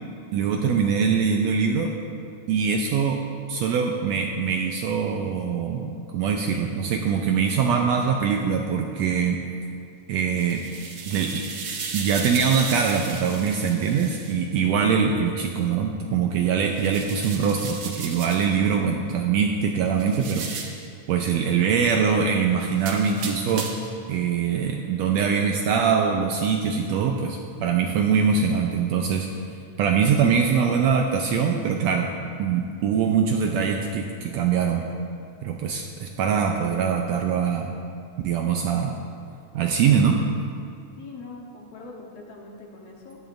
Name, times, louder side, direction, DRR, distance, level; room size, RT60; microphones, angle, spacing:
voice 1, 0.3-1.9 2.5-3.2 3.5-9.4 10.1-10.7 11.1-11.4 11.9-20.5 21.1-23.7 24.1-29.3 29.8-32.1 32.4-34.8 35.4-37.7 38.2-39.0 39.5-40.2, right 6 dB, 80° right, 2 dB, 1.6 m, -23 dB
sound 1, 10.2-14.4 16.7-18.6 20.0-20.9 22.8-24.0, right 5 dB, 60° right, 1.5 m, -35 dB
voice 2, 14.6-15.1 41.0-43.2, left 3 dB, 60° left, -1 dB, 2.1 m, -42 dB
16.0 x 11.0 x 2.6 m, 2.4 s
omnidirectional pair, 3.5 m